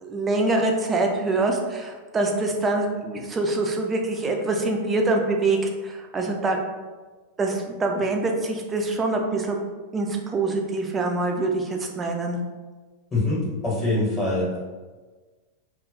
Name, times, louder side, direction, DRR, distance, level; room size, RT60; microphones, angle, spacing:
voice 1, 0.0-5.6 5.8-6.6 7.4-9.6 9.9-12.4, right 2 dB, 20° right, 2 dB, 0.4 m, -25 dB
voice 2, 13.1-14.6, left 2 dB, 20° left, -8 dB, 1.0 m, -24 dB
2.3 x 2.1 x 3.8 m, 1.3 s
figure-of-eight pair, 90°, 0 cm